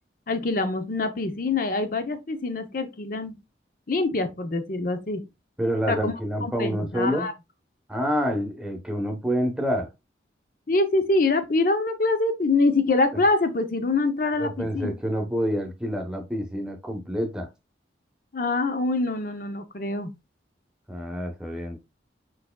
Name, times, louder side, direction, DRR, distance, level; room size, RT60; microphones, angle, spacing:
voice 1, 0.3-3.3 3.9-5.2 5.9-6.1 6.4-7.3 10.7-14.9 18.3-20.1, left 3 dB, 50° left, 0.6 m, -25 dB
voice 2, 5.6-7.3 7.9-9.9 14.4-17.5 20.9-21.8, equal, 5° right, 0.9 m, -27 dB
4.8 x 4.7 x 2.2 m
head